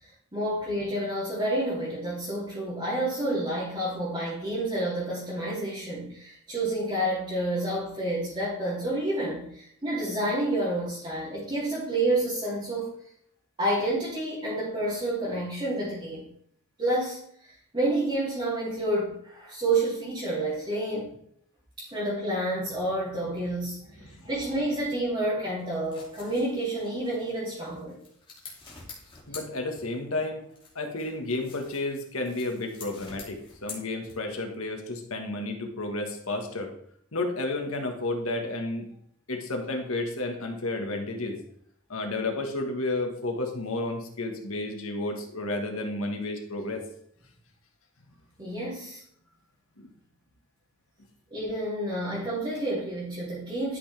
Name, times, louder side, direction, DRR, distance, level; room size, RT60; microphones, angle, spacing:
voice 1, 0.0-12.9 13.6-16.3 16.8-21.1 21.9-28.0 48.4-49.0 51.3-53.8, right 1 dB, 25° right, -9 dB, 2.8 m, -29 dB
sound 1, 25.6-30.2 30.5-34.5, left 4 dB, 25° left, 2.5 m, -47 dB
voice 2, 29.3-30.4 30.7-36.7 37.1-38.9 39.3-41.4 41.9-46.8, left 2 dB, 75° left, 3 dB, 1.6 m, -31 dB
12.0 x 5.9 x 3.4 m, 0.68 s
head